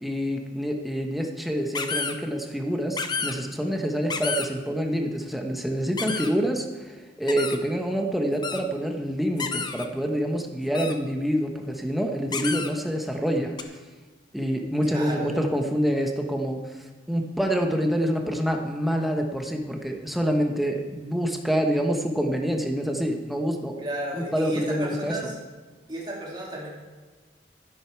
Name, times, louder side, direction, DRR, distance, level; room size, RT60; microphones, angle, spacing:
voice 1, 0.0-13.8 14.3-16.6 17.1-23.7 24.1-25.1, equal, ahead, 2 dB, 1.1 m, -27 dB
sound 1, 1.7-2.1 3.0-3.3 4.1-4.5 6.0-6.3 7.3-7.6 8.4-8.6 9.4-9.9 10.7-10.9 12.3-12.7 13.6-13.7, left 4 dB, 25° left, 0.7 m, -30 dB
voice 2, 14.8-15.4 23.8-25.4 25.9-26.7, right 1 dB, 25° right, -4 dB, 2.8 m, -33 dB
12.0 x 11.0 x 4.6 m, 1.3 s
head